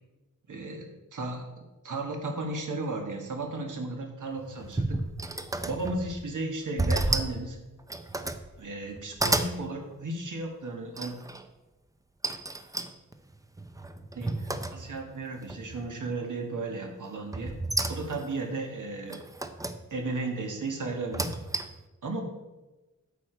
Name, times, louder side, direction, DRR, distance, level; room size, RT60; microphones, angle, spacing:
voice 1, 0.5-0.8 1.1-5.0 5.6-7.6 8.6-11.1 14.1-17.5 17.9-19.2 19.9-21.3 22.0-22.3, right 2 dB, 70° right, 3 dB, 1.5 m, -34 dB
sound 1, 4.4-6.2 6.8-7.4 7.8-8.5 8.9-9.6 11.0-11.4 12.2-15.1 15.5-16.0 17.3-18.3 19.1-19.8 20.9-21.9, right 2 dB, 10° right, 0.4 m, -31 dB
9.0 x 6.6 x 4.5 m, 1.1 s
wide cardioid pair, 160°, 32 cm